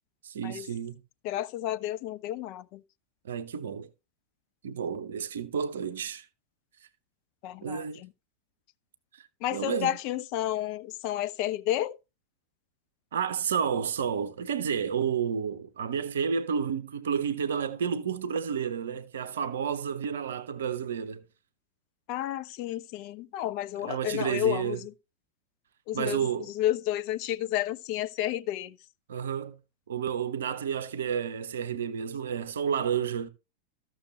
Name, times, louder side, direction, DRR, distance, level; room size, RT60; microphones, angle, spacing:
voice 1, 0.2-1.0 3.2-3.9 4.6-6.3 7.6-8.0 9.1-10.0 13.1-21.2 23.8-24.8 25.9-26.5 29.1-29.6 29.9-33.3, right 7 dB, 65° right, 0.6 m, -31 dB
voice 2, 1.2-2.8 7.4-8.1 9.4-12.0 22.1-24.9 25.9-26.2 26.5-28.8, left 13 dB, 45° left, 0.5 m, -31 dB
14.0 x 6.2 x 3.1 m
figure-of-eight pair, 90°, 0 cm